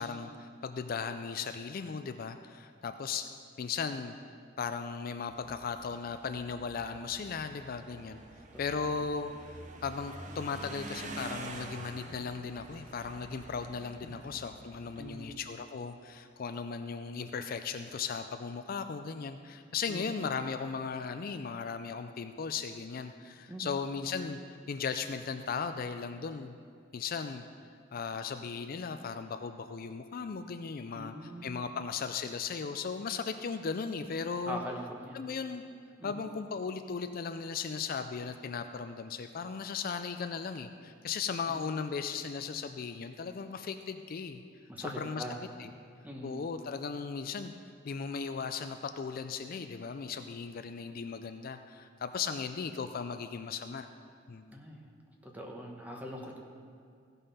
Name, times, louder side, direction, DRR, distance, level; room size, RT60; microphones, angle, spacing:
voice 1, 0.0-3.3 3.6-4.2 4.6-8.2 8.6-9.3 9.8-24.4 24.7-26.5 26.9-27.4 27.9-34.6 35.1-35.6 36.0-44.4 44.8-45.2 45.6-45.7 46.2-47.5 47.8-53.9 54.3-54.6, left 5 dB, 50° left, 8 dB, 0.4 m, -37 dB
sound 1, 5.3-15.4, right 2 dB, 40° right, 0.8 m, -47 dB
voice 2, 14.0-14.3 15.0-15.4 19.9-20.2 23.5-23.8 30.9-31.7 34.4-35.2 36.0-36.3 41.5-41.6 44.7-45.4 46.0-46.5 54.5-54.8 55.2-56.4, equal, 10° right, 0 dB, 1.2 m, -42 dB
15.5 x 5.5 x 5.6 m, 2.3 s
head